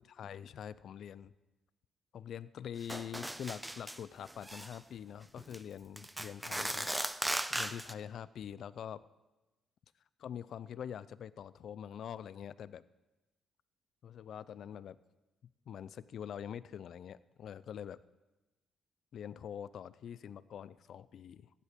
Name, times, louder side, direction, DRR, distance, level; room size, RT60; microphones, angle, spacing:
voice 1, 0.1-1.3 2.1-6.9 7.5-9.0 10.2-12.8 14.0-15.0 15.4-18.0 19.1-21.5, left 9 dB, 65° left, 18 dB, 0.5 m, -45 dB
sound 1, 2.9-4.0 4.3-4.8 5.4-5.6 6.0-7.9, right 1 dB, 10° right, 0.6 m, -37 dB
15.5 x 11.0 x 5.2 m, 1.1 s
cardioid pair, 90°, 0 cm